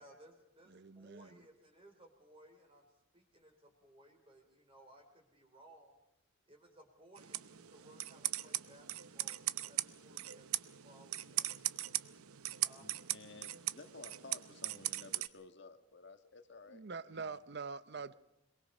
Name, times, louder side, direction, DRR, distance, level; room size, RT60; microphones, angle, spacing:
voice 1, 0.0-6.0 6.5-11.6 12.6-12.9, right 1 dB, 25° right, 3.5 m, -61 dB
voice 2, 0.7-1.4 16.7-18.1, right 4 dB, 50° right, 0.7 m, -44 dB
sound 1, 7.2-15.3, right 14 dB, 85° right, 0.7 m, -40 dB
voice 3, 12.8-16.8 17.1-17.4 18.1-18.2, left 3 dB, 55° left, 1.5 m, -55 dB
23.0 x 22.5 x 5.4 m
head